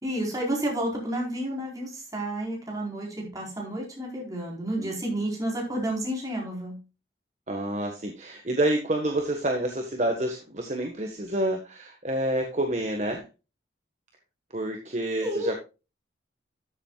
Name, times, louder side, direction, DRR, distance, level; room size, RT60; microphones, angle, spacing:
voice 1, 0.0-6.8 15.2-15.5, right 1 dB, 20° right, -2 dB, 4.2 m, -31 dB
voice 2, 7.5-13.2 14.5-15.6, right 1 dB, 40° right, 3 dB, 1.4 m, -28 dB
13.5 x 7.6 x 2.4 m, 0.30 s
head